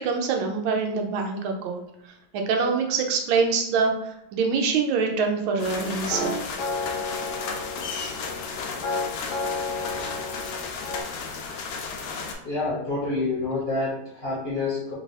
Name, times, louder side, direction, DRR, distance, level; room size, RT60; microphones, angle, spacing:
voice 1, 0.0-6.4, right 5 dB, 85° right, 3 dB, 1.4 m, -25 dB
sound 1, 5.6-12.3, left 5 dB, 85° left, 1.5 m, -34 dB
sound 2, 5.7-11.0, left 3 dB, 65° left, 1.3 m, -32 dB
voice 2, 12.4-14.9, left 3 dB, 40° left, -8 dB, 0.9 m, -28 dB
3.9 x 2.4 x 4.1 m, 0.80 s
omnidirectional pair, 2.2 m